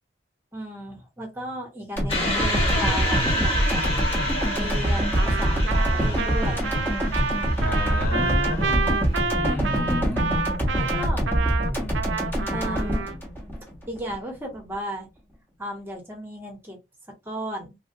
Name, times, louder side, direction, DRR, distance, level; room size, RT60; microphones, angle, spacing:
voice 1, 0.5-3.9 4.5-6.6 9.6-10.1 10.8-11.3 12.5-13.1 13.9-15.1 15.6-16.8 17.2-17.8, equal, 10° right, 1.2 m, -35 dB
sound 1, 2.0-14.2, equal, 10° left, 1.1 m, -25 dB
sound 2, 2.1-9.2, equal, 30° left, 1.5 m, -29 dB
Trumpet, 5.2-13.2, right 4 dB, 70° right, 0.5 m, -29 dB
voice 2, 7.6-10.5, left 1 dB, 45° left, 1.6 m, -32 dB
3.3 x 2.6 x 2.7 m
head